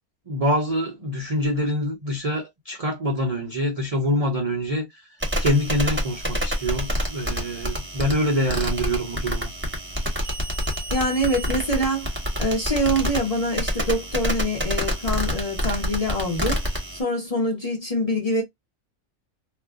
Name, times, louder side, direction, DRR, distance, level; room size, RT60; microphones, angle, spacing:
voice 1, 0.3-5.0 5.4-9.5, equal, 50° right, 0.4 m, -25 dB
sound 1, 5.2-17.0, equal, 10° right, 0.8 m, -27 dB
voice 2, 10.9-12.1 12.4-16.6 16.9-18.4, equal, 30° left, 0.8 m, -25 dB
2.4 x 2.2 x 3.4 m
omnidirectional pair, 1.5 m